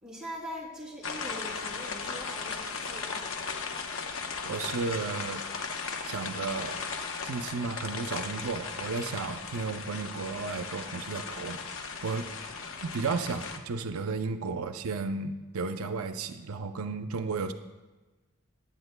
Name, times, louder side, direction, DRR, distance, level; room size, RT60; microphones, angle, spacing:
voice 1, 0.0-3.5, equal, 5° right, -4 dB, 2.9 m, -42 dB
sound 1, 1.0-13.6, left 5 dB, 70° left, 0.9 m, -37 dB
voice 2, 4.4-5.4 5.8-6.8 7.2-11.6 12.0-12.3 12.8-17.5, right 4 dB, 85° right, 8 dB, 0.5 m, -33 dB
19.0 x 8.7 x 2.2 m, 1.2 s
head